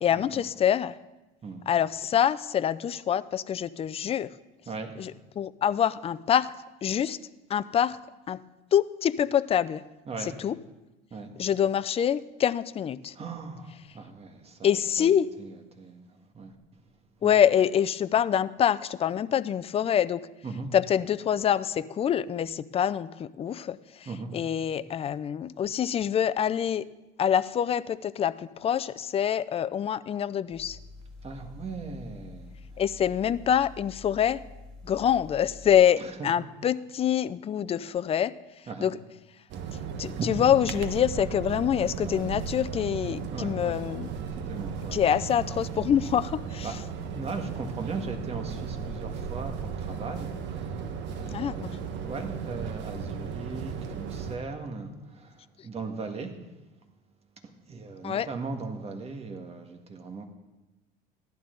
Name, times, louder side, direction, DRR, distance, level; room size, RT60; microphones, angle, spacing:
voice 1, 0.0-1.0 1.7-4.3 5.0-6.5 6.8-7.2 7.5-8.0 8.3-8.4 8.7-9.8 10.2-10.6 11.4-13.2 14.6-15.3 17.2-20.3 20.7-26.9 27.2-30.8 32.8-34.4 34.8-38.3 38.8-39.0 40.0-44.1 44.9-46.8 51.3-51.7 58.0-58.3, left 9 dB, 30° left, 15 dB, 0.4 m, -25 dB
voice 2, 10.1-10.4 11.1-11.3 13.1-14.7 15.0-15.1 15.4-16.0 16.3-16.5 17.2-17.3 20.4-20.7 24.0-24.3 31.2-32.5 36.0-36.3 38.7-38.9 39.6-40.3 41.8-42.2 43.1-43.9 44.3-45.0 46.6-46.7 47.1-56.3 57.7-60.3, right 4 dB, 30° right, 4 dB, 1.7 m, -38 dB
sound 1, 30.5-35.8, left 3 dB, 5° left, 2.2 m, -47 dB
sound 2, 39.5-54.4, right 6 dB, 65° right, 1.3 m, -36 dB
15.0 x 11.5 x 3.9 m, 1.0 s
cardioid pair, 120°, 20 cm